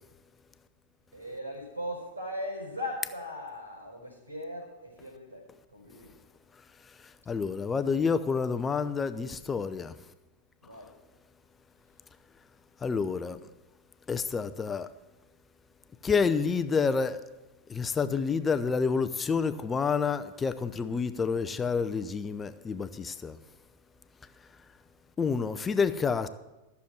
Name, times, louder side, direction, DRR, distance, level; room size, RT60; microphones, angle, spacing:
voice 1, 1.1-6.1 10.6-10.9, left 1 dB, 85° right, 4.7 m, -39 dB
voice 2, 7.0-10.0 12.8-13.4 14.1-14.9 16.0-17.2 17.7-23.4 25.2-26.3, left 5 dB, 15° left, 0.7 m, -28 dB
14.0 x 7.1 x 6.2 m
figure-of-eight pair, 90°, 0 cm